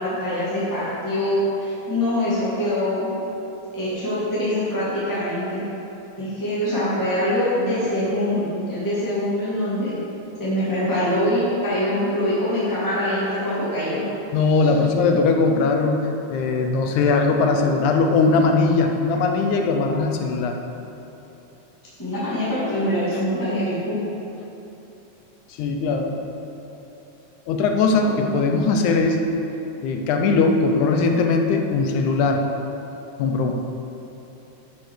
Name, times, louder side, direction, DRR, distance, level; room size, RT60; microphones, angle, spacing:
voice 1, 0.0-3.1 3.7-5.6 6.2-9.9 10.4-14.0 22.0-24.0 28.0-28.3, left 1 dB, 10° left, -10 dB, 1.6 m, -24 dB
voice 2, 14.3-16.0 16.3-20.6 23.1-23.2 25.5-26.2 27.5-29.2 29.8-32.4 33.2-33.5, left 4 dB, 80° left, 4 dB, 2.2 m, -20 dB
9.2 x 5.8 x 6.4 m, 3.0 s
omnidirectional pair, 3.4 m